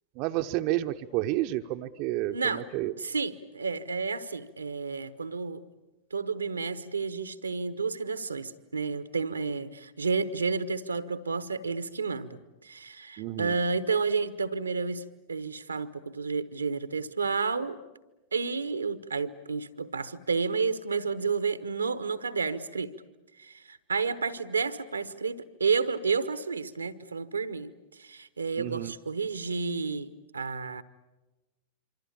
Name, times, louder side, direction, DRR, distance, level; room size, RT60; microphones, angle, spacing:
voice 1, 0.2-2.9 13.2-13.6 28.6-28.9, right 15 dB, 45° right, 6 dB, 0.9 m, -30 dB
voice 2, 2.3-2.6 3.0-5.6 6.1-15.0 15.3-17.8 18.3-22.9 23.4-30.8, right 4 dB, 80° right, 14 dB, 1.1 m, -31 dB
26.5 x 25.5 x 8.6 m, 1.1 s
figure-of-eight pair, 90°, 0 cm